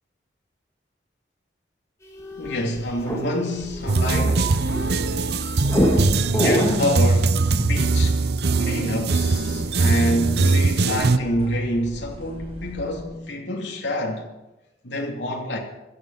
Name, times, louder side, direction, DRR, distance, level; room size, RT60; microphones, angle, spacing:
sound 1, 2.1-5.2 5.6-6.9, equal, 15° left, 3.0 m, -25 dB
voice 1, 2.4-4.5 5.7-5.9 6.3-8.3 8.5-14.3 14.8-15.6, equal, 90° left, 2.8 m, -27 dB
sound 2, 3.7-13.0, equal, 30° right, 5.2 m, -40 dB
sound 3, 3.9-11.2, right 3 dB, 65° right, 0.7 m, -21 dB
16.0 x 13.5 x 5.6 m
head